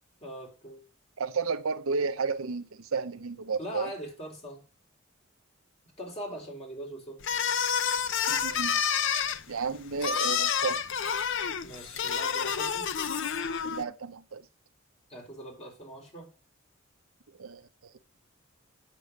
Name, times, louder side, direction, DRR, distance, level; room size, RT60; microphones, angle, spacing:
voice 1, 0.2-0.8 3.6-4.6 6.0-7.2 11.6-12.9 15.1-16.3, equal, 30° left, 3.8 m, -41 dB
voice 2, 1.2-3.9 8.3-8.8 9.5-11.1 13.6-14.5 17.4-17.9, right 5 dB, 80° right, 0.7 m, -33 dB
sound 1, 7.2-13.8, left 7 dB, 60° left, 0.6 m, -29 dB
8.1 x 6.8 x 6.6 m
head